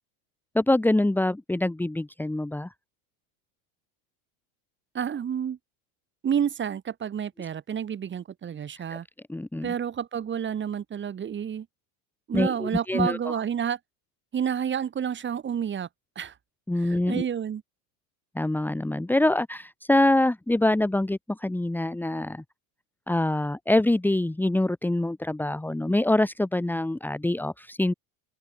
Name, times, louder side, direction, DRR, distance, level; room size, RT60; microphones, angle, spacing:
voice 1, 0.5-2.7 8.9-9.0 9.3-9.7 12.3-13.2 16.7-17.2 18.3-22.4 23.1-27.9, left 1 dB, 5° left, 2.8 m, -25 dB
voice 2, 4.9-5.6 6.2-9.1 9.6-11.7 12.3-13.8 14.3-15.9 16.2-16.3 16.8-17.6, right 8 dB, 25° right, 5.8 m, -29 dB
open air
supercardioid pair, 145°, 42 cm